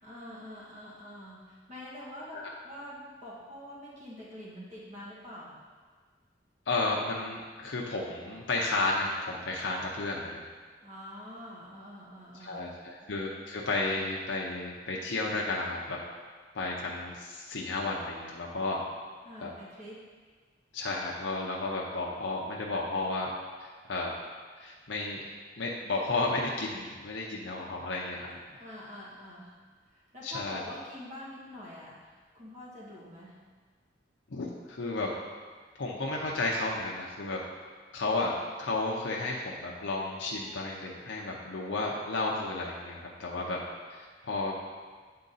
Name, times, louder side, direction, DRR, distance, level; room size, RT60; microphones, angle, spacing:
voice 1, 0.0-2.4 2.6-5.6 10.8-12.8 19.2-20.0 28.5-29.6 29.9-33.4, left 1 dB, 40° right, -6 dB, 1.7 m, -45 dB
voice 2, 6.7-10.4 12.4-16.0 16.5-18.8 19.4-19.5 20.7-23.3 23.6-24.1 24.6-25.2 25.6-28.4 30.2-30.6 34.3-35.1 35.8-37.4 37.9-43.6 44.0-44.6, left 2 dB, 75° left, -3 dB, 0.7 m, -32 dB
8.7 x 3.8 x 4.0 m, 1.5 s
head